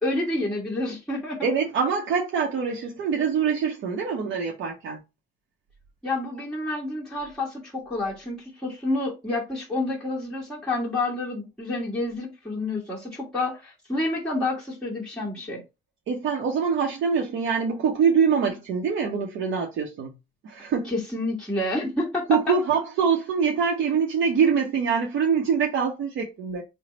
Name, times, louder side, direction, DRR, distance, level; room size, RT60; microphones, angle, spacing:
voice 1, 0.0-1.5 6.0-15.6 20.8-22.5, left 2 dB, 5° left, 1.4 m, -29 dB
voice 2, 1.4-5.0 16.1-20.1 20.4-20.9 22.3-26.6, right 6 dB, 75° right, 0.7 m, -24 dB
3.3 x 2.0 x 3.7 m
cardioid pair, 90°, 20 cm